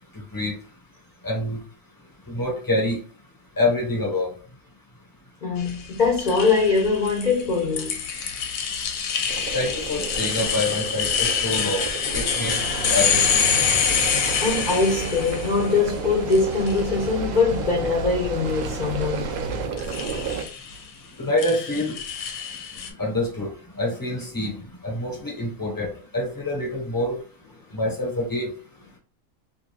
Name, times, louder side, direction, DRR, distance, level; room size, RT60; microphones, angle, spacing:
voice 1, 1.2-1.6 2.3-3.0 3.6-4.3 9.5-11.8 12.1-12.6 12.9-13.2 21.2-21.9 23.0-23.5 23.8-24.5 24.8-27.2 27.7-28.5, left 1 dB, 15° left, 1.2 m, -26 dB
voice 2, 5.4-7.9 14.4-19.3, left 4 dB, 45° left, 0.6 m, -22 dB
sound 1, 5.6-15.9 16.3-17.0 19.8-20.8 21.4-22.9, left 7 dB, 85° left, 1.1 m, -26 dB
sound 2, 9.3-20.4, right 6 dB, 90° right, 0.4 m, -33 dB
sound 3, 12.0-19.7, right 1 dB, 70° right, 0.9 m, -34 dB
2.8 x 2.6 x 2.4 m
omnidirectional pair, 1.4 m